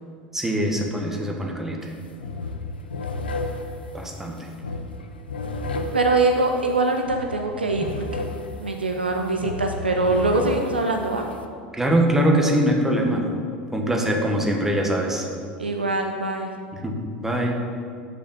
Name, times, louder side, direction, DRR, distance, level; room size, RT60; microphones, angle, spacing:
voice 1, 0.3-1.9 3.9-4.5 11.7-13.2 13.7-15.3 16.8-17.6, right 1 dB, 5° right, 1 dB, 1.4 m, -23 dB
sound 1, 1.8-11.4, left 3 dB, 75° left, 0.6 m, -33 dB
voice 2, 5.9-8.3 8.6-11.3 15.6-16.5, right 2 dB, 85° right, 4 dB, 0.6 m, -23 dB
6.3 x 5.8 x 7.1 m, 2.2 s
figure-of-eight pair, 80°, 5 cm